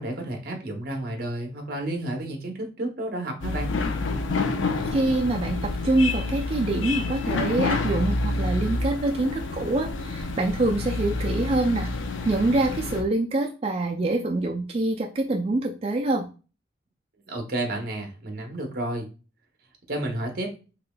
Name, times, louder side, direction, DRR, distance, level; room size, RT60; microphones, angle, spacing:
voice 1, 0.0-3.7 17.3-19.1 19.9-20.6, right 1 dB, 50° right, 3 dB, 0.8 m, -31 dB
sound 1, 3.4-13.0, left 3 dB, 90° left, 0.5 m, -28 dB
voice 2, 4.9-11.9 12.2-16.3, right 2 dB, 30° right, 2 dB, 0.3 m, -25 dB
4.0 x 2.9 x 2.2 m, 0.33 s
head